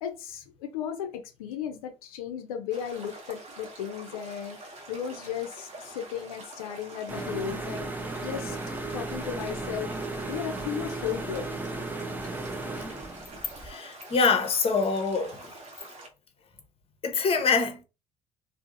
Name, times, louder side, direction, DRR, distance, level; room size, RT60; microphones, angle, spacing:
voice 1, 0.0-4.6 4.9-7.9 8.2-8.6 8.9-10.0 10.3-11.5, left 9 dB, 75° left, 0.4 m, -35 dB
sound 1, 2.7-16.1, right 2 dB, 40° right, 0.9 m, -46 dB
sound 2, 7.1-13.7, right 2 dB, 10° right, 0.5 m, -35 dB
voice 2, 13.6-15.5 17.0-17.8, left 5 dB, 30° left, 0.6 m, -25 dB
2.6 x 2.0 x 2.5 m
figure-of-eight pair, 60°, 19 cm